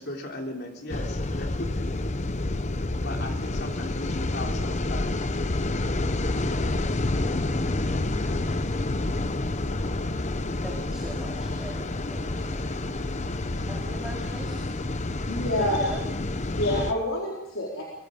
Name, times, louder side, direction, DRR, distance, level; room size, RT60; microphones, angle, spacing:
voice 1, 0.0-2.0 3.0-5.1, left 1 dB, 50° left, 2 dB, 3.4 m, -37 dB
sound 1, 0.9-16.9, left 2 dB, 35° left, 0.9 m, -28 dB
voice 2, 10.6-12.7 13.7-14.7 15.5-16.1 16.4-16.6, right 1 dB, 5° right, -2 dB, 3.2 m, -40 dB
voice 3, 15.2-15.9 16.5-17.8, left 1 dB, 70° left, -3 dB, 4.4 m, -27 dB
24.0 x 22.5 x 5.3 m, 0.89 s
head